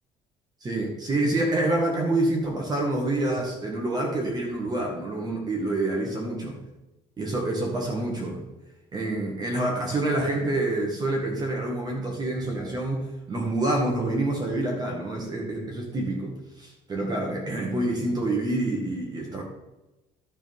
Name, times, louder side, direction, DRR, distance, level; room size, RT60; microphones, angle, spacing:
voice 1, 0.6-6.6 7.2-8.4 8.9-19.4, right 2 dB, 25° right, -1 dB, 1.9 m, -27 dB
11.5 x 4.5 x 5.5 m, 1.0 s
cardioid pair, 135°, 14 cm